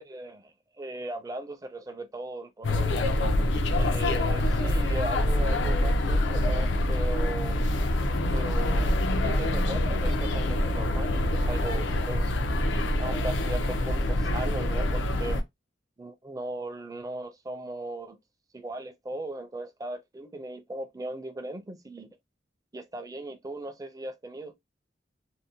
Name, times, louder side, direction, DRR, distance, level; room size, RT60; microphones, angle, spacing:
voice 1, 0.0-3.0 3.7-7.6 8.3-12.3 13.0-15.4 16.0-18.2 18.5-22.1 22.7-24.5, right 2 dB, 20° right, 0.4 m, -38 dB
sound 1, 2.6-15.4, left 1 dB, 80° left, 0.5 m, -25 dB
2.6 x 2.0 x 2.7 m
head